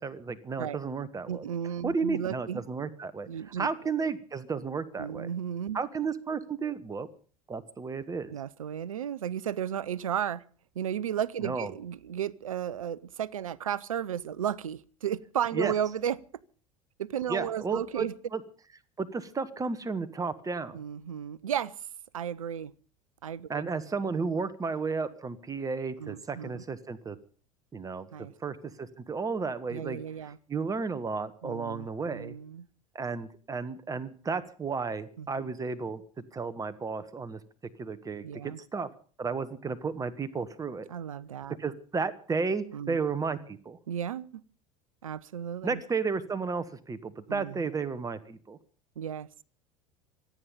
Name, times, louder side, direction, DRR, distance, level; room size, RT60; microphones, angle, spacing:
voice 1, 0.0-1.4 1.8-3.3 3.6-5.3 5.7-7.1 7.5-8.3 11.4-11.7 15.5-15.7 17.3-18.1 18.3-18.4 19.0-20.8 23.5-27.2 27.7-28.1 28.4-32.3 32.9-36.0 36.3-37.4 37.8-38.9 39.2-40.9 41.6-43.8 45.6-48.6, right 4 dB, 20° right, 1.6 m, -33 dB
voice 2, 1.3-2.6 3.3-3.7 5.0-5.8 8.3-10.4 10.7-16.2 17.0-18.1 20.7-21.8 22.1-22.7 23.2-23.7 26.0-26.6 28.1-28.3 29.7-30.4 31.4-32.7 35.2-35.5 38.2-38.6 40.9-41.6 42.7-43.0 43.9-44.4 45.0-45.8 47.3-47.7 49.0-49.3, right 9 dB, 75° right, 0.7 m, -34 dB
25.5 x 9.3 x 5.4 m
figure-of-eight pair, 70°, 18 cm